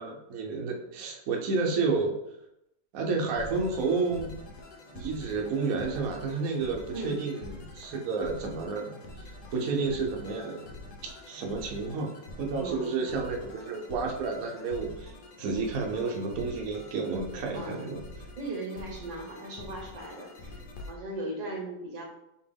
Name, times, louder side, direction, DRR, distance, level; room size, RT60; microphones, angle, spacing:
voice 1, 0.0-2.1 2.9-4.3 4.9-10.7 11.0-12.1 12.4-15.1 15.4-18.0, right 4 dB, 60° right, 0 dB, 1.1 m, -31 dB
sound 1, 3.3-20.9, left 2 dB, 70° left, 1.1 m, -46 dB
voice 2, 12.6-13.0 17.5-17.9 18.4-22.0, right 2 dB, 90° right, 0 dB, 1.7 m, -38 dB
4.4 x 3.0 x 3.4 m, 0.83 s
omnidirectional pair, 1.9 m